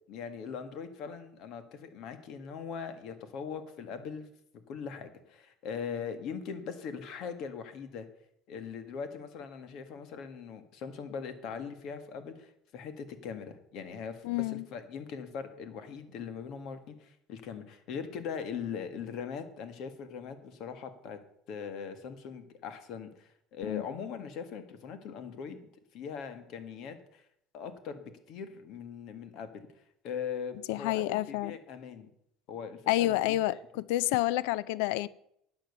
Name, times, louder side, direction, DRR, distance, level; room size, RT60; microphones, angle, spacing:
voice 1, 0.1-4.3 4.7-8.1 8.5-21.2 21.5-27.2 27.5-29.6 30.0-32.1 32.5-33.6, left 6 dB, 55° left, 1.8 m, -41 dB
voice 2, 14.2-14.6 23.7-23.8 30.7-31.5 32.9-33.5 33.9-35.1, left 16 dB, 85° left, 0.5 m, -28 dB
12.5 x 9.0 x 6.8 m
cardioid pair, 145°, 0 cm